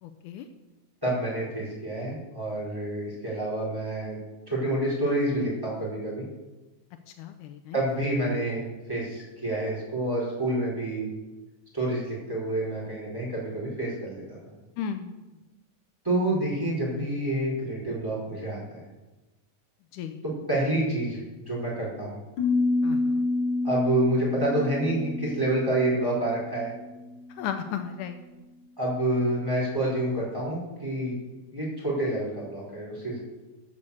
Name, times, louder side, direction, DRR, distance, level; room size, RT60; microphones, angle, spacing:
voice 1, 0.0-0.5 7.1-7.8 14.8-15.1 19.9-20.2 22.8-23.2 27.4-28.2, left 8 dB, 80° left, 8 dB, 2.1 m, -35 dB
voice 2, 1.0-4.2 4.5-6.2 7.7-11.1 11.7-14.5 16.0-18.8 20.2-22.2 23.6-26.7 28.8-31.2 31.5-33.2, right 1 dB, 5° right, -6 dB, 4.8 m, -28 dB
sound 1, 22.4-27.3, left 3 dB, 60° left, 3.8 m, -28 dB
13.5 x 6.7 x 7.0 m, 1.1 s
omnidirectional pair, 3.7 m